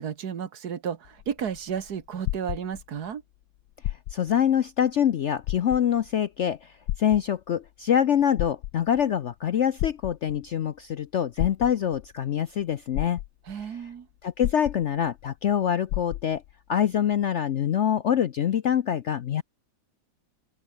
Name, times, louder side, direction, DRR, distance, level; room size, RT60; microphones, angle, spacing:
voice 1, 0.0-3.2 13.5-14.1, right 7 dB, 65° right, 1.9 m, -33 dB
sound 1, 1.0-3.1 3.7-4.4 4.8-4.9 5.4-6.1 6.9-7.7 8.2-9.1 9.8-10.5 11.4-12.1 12.6-12.7 12.9-13.7 14.4-15.2 15.5-15.6 15.9-16.5 17.2-17.3, left 14 dB, 80° left, 1.3 m, -32 dB
voice 2, 4.1-13.2 13.6-13.7 14.2-16.4 16.7-19.4, left 9 dB, 60° left, 0.7 m, -25 dB
open air
omnidirectional pair, 1.9 m